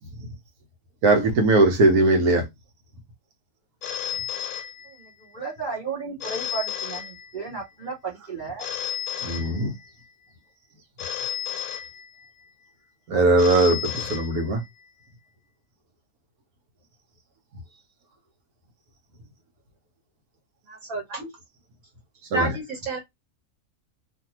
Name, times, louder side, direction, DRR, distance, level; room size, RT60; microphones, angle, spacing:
voice 1, 1.0-2.5 9.2-9.7 13.1-14.6 22.3-22.5, right 2 dB, 85° right, 1.3 m, -19 dB
Telephone, 3.8-5.3 6.2-7.7 8.6-10.1 11.0-12.5 13.4-14.9, left 9 dB, 85° left, 1.1 m, -33 dB
voice 2, 4.8-8.6 9.2-9.3, right 4 dB, 40° right, 0.8 m, -34 dB
voice 3, 20.7-21.3 22.3-23.0, right 2 dB, 65° right, 1.3 m, -30 dB
2.7 x 2.6 x 2.8 m
omnidirectional pair, 1.6 m